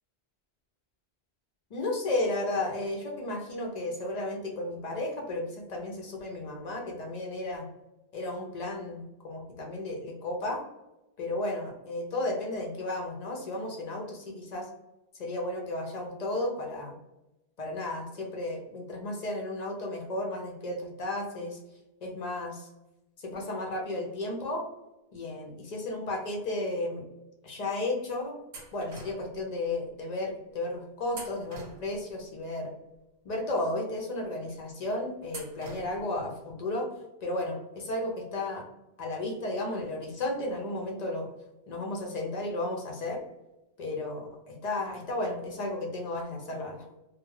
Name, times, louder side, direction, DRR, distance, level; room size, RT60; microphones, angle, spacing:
voice 1, 1.7-7.7 8.1-10.6 11.2-14.7 15.2-17.0 17.6-21.6 22.0-22.7 23.2-24.6 25.1-27.0 27.4-28.4 28.7-32.7 33.2-36.9 37.2-38.6 39.0-41.3 41.7-43.2 43.8-46.9, left 2 dB, 55° left, 0 dB, 0.5 m, -33 dB
sound 1, 28.5-29.4 31.1-32.2 35.3-36.2, right 2 dB, 75° right, 0.9 m, -45 dB
2.2 x 2.0 x 3.0 m, 0.95 s
omnidirectional pair, 1.1 m